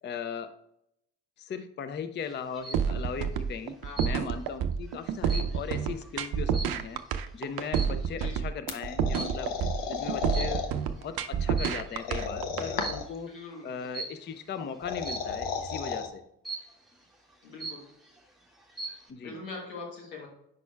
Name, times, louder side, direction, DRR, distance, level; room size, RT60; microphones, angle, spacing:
voice 1, 0.0-0.5 1.4-7.0 7.3-9.5 9.9-10.7 11.0-13.3 13.6-16.2 19.1-19.4, left 6 dB, 20° left, 10 dB, 0.5 m, -38 dB
sound 1, 2.3-2.9 3.9-4.5 4.9-7.1 7.7-8.1 9.1-9.5 10.3-10.9 11.4-12.1 12.8-13.2 13.9-14.3 15.0-15.5 16.4-16.9 17.3-17.4 17.6-18.2 18.6-19.1, right 3 dB, ahead, 1.3 m, -40 dB
sound 2, 2.7-12.7, right 7 dB, 50° right, 0.6 m, -29 dB
voice 2, 3.8-4.2 8.1-8.4 13.3-13.7 17.4-17.8 19.2-20.3, left 3 dB, 85° left, 0 dB, 1.5 m, -42 dB
sound 3, 8.7-10.7 12.0-13.2 14.6-16.1, left 5 dB, 55° left, 1.1 m, -34 dB
8.7 x 6.0 x 2.3 m, 0.77 s
hypercardioid pair, 45°, 49 cm